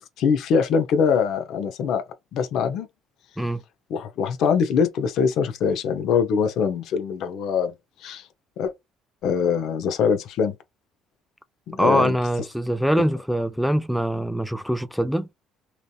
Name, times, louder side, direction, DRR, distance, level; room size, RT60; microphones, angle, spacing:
voice 1, 0.2-2.0 2.3-2.9 3.9-7.7 8.0-8.3 8.6-8.7 9.2-10.6 11.7-12.2, left 6 dB, 65° left, 0.6 m, -23 dB
voice 2, 11.7-15.3, equal, ahead, 0.3 m, -23 dB
3.1 x 2.7 x 2.3 m
cardioid pair, 100°, 0 cm